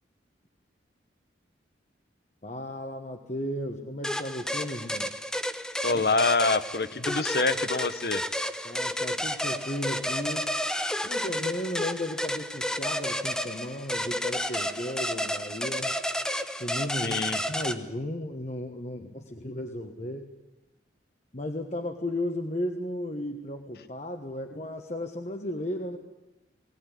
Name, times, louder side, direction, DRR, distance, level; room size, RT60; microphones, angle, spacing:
voice 1, 2.4-5.1 5.9-6.0 8.6-10.5 11.0-15.9 16.6-20.3 21.3-26.0, left 1 dB, 40° left, 3 dB, 1.4 m, -34 dB
sound 1, 4.0-17.7, equal, 5° left, 0.9 m, -31 dB
voice 2, 5.8-8.2 17.0-17.4, left 3 dB, 55° left, 14 dB, 1.0 m, -26 dB
21.0 x 17.0 x 9.9 m, 1.0 s
head